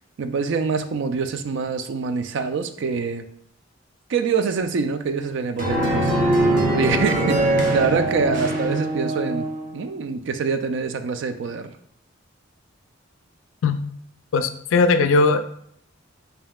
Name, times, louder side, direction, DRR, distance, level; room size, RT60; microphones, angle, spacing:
voice 1, 0.2-3.2 4.1-6.1 6.7-9.5 9.7-11.7, right 5 dB, 65° right, 9 dB, 0.4 m, -25 dB
sound 1, 5.6-9.7, right 1 dB, 45° right, 0.7 m, -22 dB
voice 2, 14.3-15.4, left 3 dB, 75° left, 10 dB, 0.4 m, -18 dB
5.4 x 2.7 x 2.3 m, 0.67 s
head